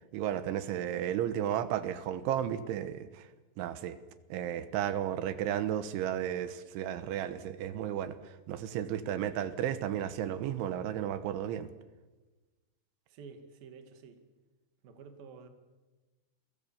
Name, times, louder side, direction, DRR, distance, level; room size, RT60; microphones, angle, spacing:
voice 1, 0.1-3.3 3.6-4.0 4.3-8.2 8.5-11.7, right 10 dB, 75° right, 12 dB, 3.3 m, -33 dB
voice 2, 13.1-14.2 14.8-15.5, right 5 dB, 55° right, 7 dB, 3.5 m, -50 dB
29.5 x 23.0 x 7.1 m, 1.2 s
omnidirectional pair, 5.7 m